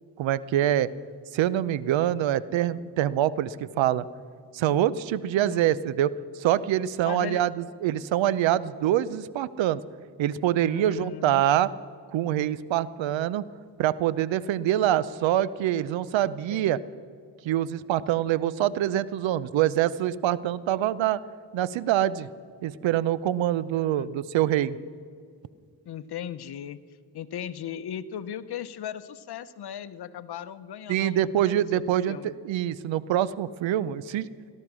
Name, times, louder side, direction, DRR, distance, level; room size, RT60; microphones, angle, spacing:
voice 1, 0.2-0.9 1.3-4.0 4.5-6.1 6.4-9.8 10.2-11.7 12.1-13.4 13.8-16.8 17.4-21.2 21.5-22.3 22.6-24.8 30.9-34.3, right 12 dB, 75° right, 19 dB, 0.7 m, -25 dB
voice 2, 5.4-5.8 7.0-7.4 10.6-11.5 16.5-16.8 23.7-24.1 25.8-26.8 27.1-32.4, left 9 dB, 55° left, 14 dB, 0.8 m, -38 dB
18.0 x 12.0 x 6.1 m, 2.3 s
cardioid pair, 75°, 46 cm